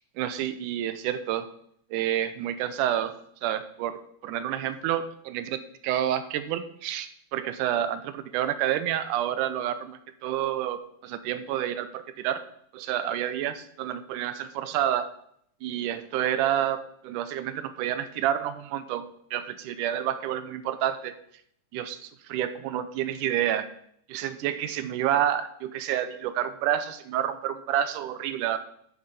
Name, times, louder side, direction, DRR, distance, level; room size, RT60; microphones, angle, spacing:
voice 1, 0.2-1.4 1.9-3.1 3.4-12.4 12.7-15.1 15.6-21.1 21.7-22.0 22.3-23.7 24.1-28.6, right 11 dB, 80° right, 12 dB, 2.1 m, -29 dB
8.8 x 7.4 x 5.3 m, 0.67 s
omnidirectional pair, 3.8 m